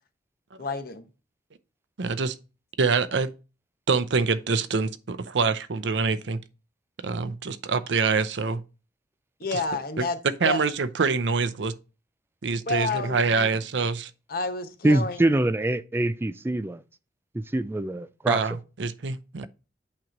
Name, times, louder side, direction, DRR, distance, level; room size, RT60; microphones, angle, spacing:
voice 1, 0.6-1.1 9.4-10.2 10.4-10.6 12.7-13.5 14.3-15.4, left 3 dB, 55° left, 0.9 m, -30 dB
voice 2, 2.0-2.3 2.8-3.3 3.9-6.4 7.0-8.6 9.5-9.6 10.0-10.1 10.4-11.8 12.4-14.1 18.3-19.5, right 4 dB, 85° right, 0.6 m, -25 dB
voice 3, 14.8-16.8 17.3-18.4, right 1 dB, 15° right, 0.3 m, -24 dB
8.7 x 3.1 x 5.1 m
head